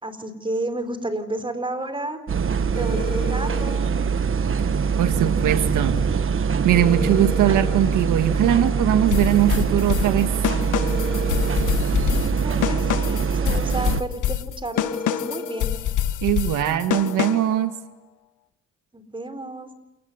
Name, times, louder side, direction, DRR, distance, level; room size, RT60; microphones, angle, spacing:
voice 1, 0.0-2.2 2.8-3.9 12.1-15.7 18.9-19.7, right 2 dB, 15° right, 10 dB, 4.4 m, -31 dB
sound 1, 2.3-14.0, right 6 dB, 45° right, 1.3 m, -23 dB
sound 2, 2.7-3.8 6.7-7.8 10.7-11.8 14.7-15.8, left 3 dB, 30° left, 3.1 m, -33 dB
voice 2, 5.0-6.0 6.6-10.3 16.2-17.8, right 11 dB, 85° right, 8 dB, 1.8 m, -20 dB
sound 3, 9.1-17.6, left 10 dB, 80° left, 1.8 m, -26 dB
28.5 x 19.5 x 10.0 m, 0.97 s
cardioid pair, 90°, 30 cm